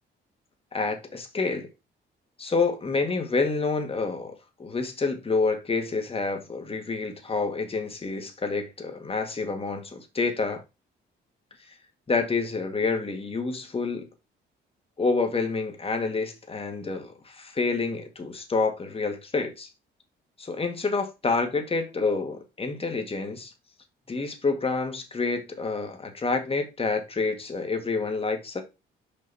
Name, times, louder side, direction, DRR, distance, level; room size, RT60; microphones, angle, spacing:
voice 1, 0.7-1.7 2.4-4.3 4.6-10.6 12.1-14.1 15.0-19.7 20.4-23.5 24.1-28.6, left 4 dB, 30° left, 1.9 m, -28 dB
5.7 x 5.4 x 4.1 m
cardioid pair, 90°, 20 cm